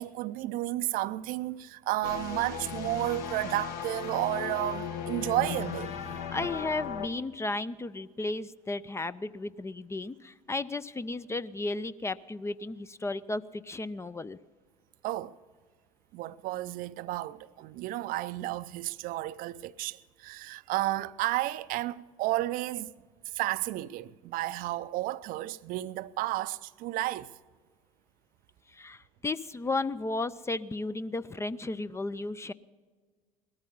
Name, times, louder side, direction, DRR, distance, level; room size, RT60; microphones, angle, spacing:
voice 1, 0.0-6.5 15.0-15.4 16.1-22.9 23.3-27.3, right 16 dB, 55° right, 0.5 m, -32 dB
sound 1, 2.0-7.1, left 7 dB, 55° left, 1.3 m, -37 dB
voice 2, 6.3-14.4 28.7-32.5, left 2 dB, 15° left, 0.5 m, -34 dB
19.0 x 13.5 x 5.4 m
figure-of-eight pair, 60°, 18 cm